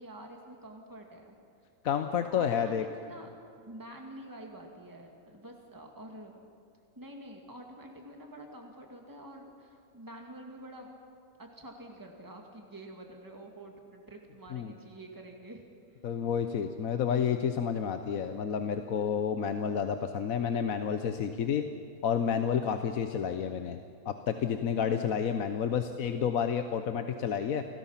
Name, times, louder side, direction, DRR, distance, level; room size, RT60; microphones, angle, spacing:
voice 1, 0.0-1.4 2.3-3.3 3.6-6.3 7.0-10.9 11.4-15.6 15.9-16.1, right 1 dB, 15° right, 1 dB, 2.3 m, -48 dB
voice 2, 1.8-2.9 14.5-14.7 16.0-21.6 22.0-23.8 24.1-27.6, left 7 dB, 75° left, 7 dB, 1.3 m, -30 dB
29.5 x 19.5 x 5.8 m, 2.4 s
omnidirectional pair, 1.5 m